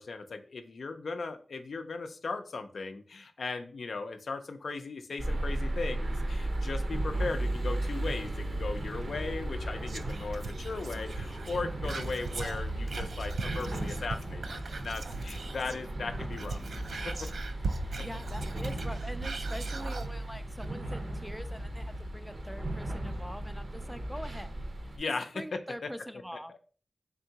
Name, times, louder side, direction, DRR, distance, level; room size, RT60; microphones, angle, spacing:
voice 1, 0.0-16.6 16.9-17.1 24.9-25.9, left 4 dB, 80° left, 7 dB, 0.4 m, -37 dB
sound 1, 5.2-25.0, right 1 dB, 65° right, 0.7 m, -35 dB
Whispering, 9.9-15.9 16.2-20.1 20.6-20.7, right 4 dB, 80° right, 0.3 m, -40 dB
voice 2, 18.0-24.6 25.0-26.6, equal, ahead, 11 dB, 0.3 m, -44 dB
3.7 x 3.4 x 2.7 m, 0.41 s
wide cardioid pair, 70°, 0 cm